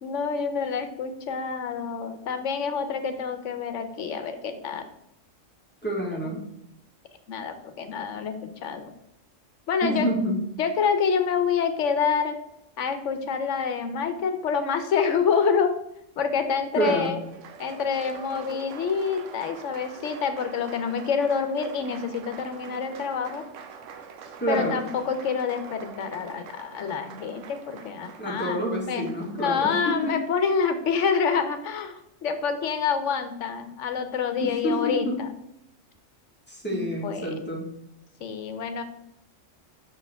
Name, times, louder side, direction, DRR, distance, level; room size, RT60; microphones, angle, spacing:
voice 1, 0.0-4.9 6.2-6.3 7.3-8.9 9.7-10.1 10.6-12.4 12.8-15.7 16.2-17.2 17.6-23.4 24.5-29.1 29.4-35.3 36.7-37.3 38.2-38.8, left 6 dB, 75° left, 9 dB, 1.0 m, -27 dB
voice 2, 5.8-6.5 9.8-10.4 16.7-17.2 24.4-24.8 28.2-30.2 34.4-35.2 36.5-37.7, equal, 10° left, -2 dB, 1.4 m, -28 dB
Applause, 17.0-30.3, right 6 dB, 75° right, 1.0 m, -45 dB
6.1 x 4.7 x 3.4 m, 0.81 s
omnidirectional pair, 1.3 m